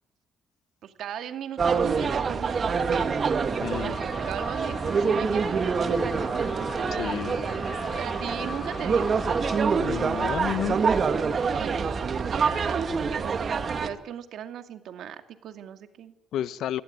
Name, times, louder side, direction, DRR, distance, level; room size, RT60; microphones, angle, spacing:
voice 1, 0.8-3.2 3.7-4.0 4.3-6.6 7.9-9.2 11.5-16.1, right 9 dB, 75° right, 2.3 m, -38 dB
sound 1, 1.6-13.9, right 5 dB, 45° right, 2.1 m, -26 dB
sound 2, 3.2-9.6, left 3 dB, 25° left, 5.1 m, -40 dB
voice 2, 3.6-4.0 6.9-7.4 9.8-10.8 16.3-16.8, left 11 dB, 80° left, 1.1 m, -31 dB
24.0 x 18.0 x 9.7 m
cardioid pair, 90°, 0 cm